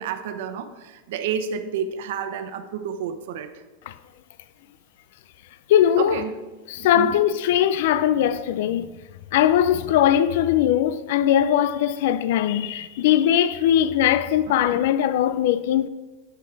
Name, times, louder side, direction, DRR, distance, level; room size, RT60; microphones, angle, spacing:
voice 1, 0.0-3.5 6.0-6.3 6.8-7.1 14.5-14.6, right 7 dB, 60° right, 0.9 m, -30 dB
voice 2, 5.7-6.3 6.7-8.9 9.3-15.9, left 10 dB, 60° left, 0.4 m, -20 dB
9.3 x 8.3 x 4.7 m
supercardioid pair, 170°, 0 cm